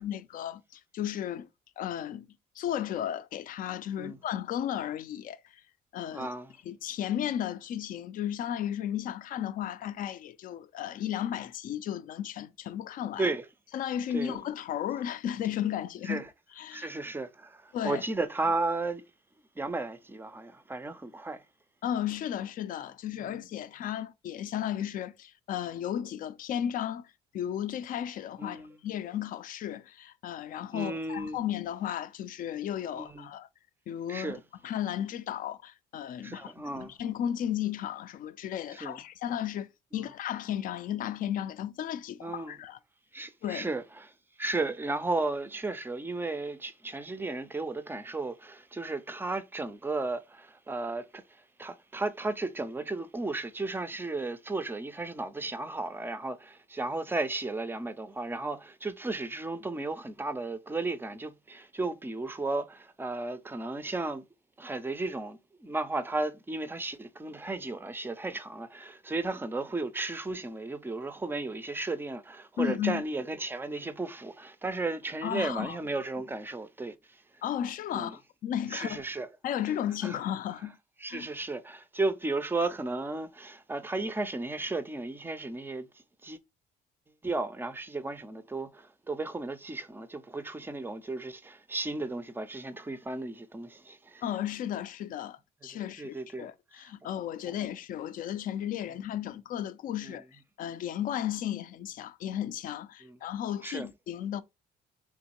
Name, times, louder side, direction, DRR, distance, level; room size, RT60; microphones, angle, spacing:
voice 1, 0.0-1.5 1.8-2.3 2.6-5.6 5.9-6.3 6.6-13.3 13.7-16.2 16.6-16.9 17.7-18.0 21.8-33.5 33.9-42.8 43.4-43.7 72.6-73.0 75.2-75.8 77.4-79.0 79.4-80.8 81.1-81.3 94.2-104.4, left 10 dB, 55° left, 0.4 m, -34 dB
voice 2, 6.1-6.5 13.2-13.5 14.1-14.4 16.0-16.3 16.7-19.0 19.6-21.4 23.2-23.3 28.4-28.7 30.7-31.4 33.0-33.3 34.1-34.4 36.2-36.9 38.7-39.0 39.9-40.1 42.2-42.6 43.1-44.1 44.4-64.2 64.6-77.2 77.9-78.2 78.7-79.3 80.0-80.2 81.0-85.9 86.2-86.4 87.2-94.2 95.7-96.5 96.8-96.9 97.5-97.6 100.0-100.2 103.0-103.2 103.6-103.9, right 2 dB, 15° right, 0.4 m, -34 dB
3.5 x 3.0 x 2.9 m
cardioid pair, 110°, 17 cm